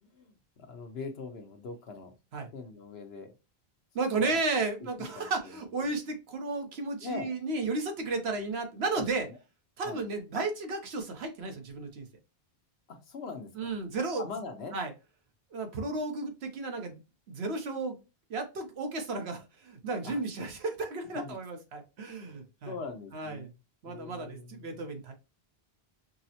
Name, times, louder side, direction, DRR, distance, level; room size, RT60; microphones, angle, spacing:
voice 1, 0.0-2.1 2.5-3.3 4.2-4.4 4.8-4.9 5.1-5.9 7.0-7.3 8.9-9.4 9.8-10.0 12.9-13.7 14.2-14.8 20.0-20.5 21.1-21.4 22.3-23.5 23.8-24.9, left 4 dB, 75° left, 5 dB, 1.1 m, -42 dB
voice 2, 3.9-9.3 9.8-12.1 13.6-14.3 14.7-14.9 15.5-17.0 17.3-18.0 18.3-22.7 23.1-23.5 23.8-25.1, right 3 dB, 80° right, 5 dB, 1.1 m, -33 dB
5.2 x 2.0 x 2.7 m, 0.28 s
omnidirectional pair, 1.1 m